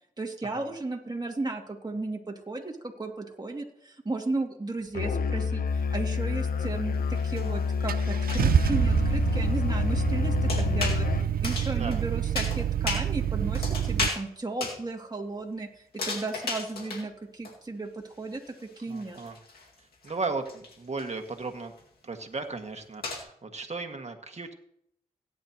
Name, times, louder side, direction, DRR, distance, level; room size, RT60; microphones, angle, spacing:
voice 1, 0.2-11.1 11.4-19.2, right 2 dB, 25° right, 1 dB, 2.4 m, -35 dB
Musical instrument, 4.9-11.3, left 5 dB, 70° left, 0.7 m, -28 dB
sound 1, 6.1-6.2 6.9-8.6 10.5-11.0 11.4-12.0 12.4-13.1 13.5-14.2 14.6-14.8 15.9-17.0 17.4-17.5 17.9-18.0 18.4-21.4 21.8-21.9 22.6-22.7 23.0-23.2, left 3 dB, 90° left, 2.1 m, -35 dB
Car / Engine starting, 7.2-7.3 7.9-14.1, right 9 dB, 75° right, 0.5 m, -27 dB
voice 2, 11.7-12.0 18.9-19.4 19.8-21.7 22.0-24.5, right 3 dB, 45° right, 5 dB, 1.9 m, -36 dB
17.5 x 10.0 x 3.0 m, 0.72 s
cardioid pair, 45°, 15 cm